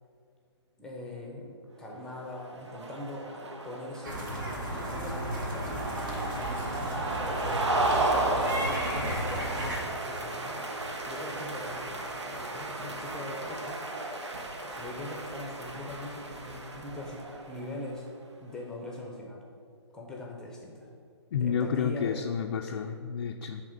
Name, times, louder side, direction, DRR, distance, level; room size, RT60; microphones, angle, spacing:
voice 1, 0.8-5.8 6.5-7.8 8.7-10.6 11.0-11.9 12.2-14.1 14.6-18.1 18.4-19.4 19.9-20.9 21.3-22.3, left 1 dB, 5° left, -2 dB, 0.9 m, -42 dB
sound 1, 2.1-17.8, right 2 dB, 75° right, 1.2 m, -34 dB
sound 2, 4.0-9.8, right 1 dB, 45° right, 1.6 m, -34 dB
voice 2, 21.3-23.6, left 7 dB, 50° left, 4 dB, 0.4 m, -30 dB
8.4 x 3.6 x 6.7 m, 2.2 s
figure-of-eight pair, 140°, 15 cm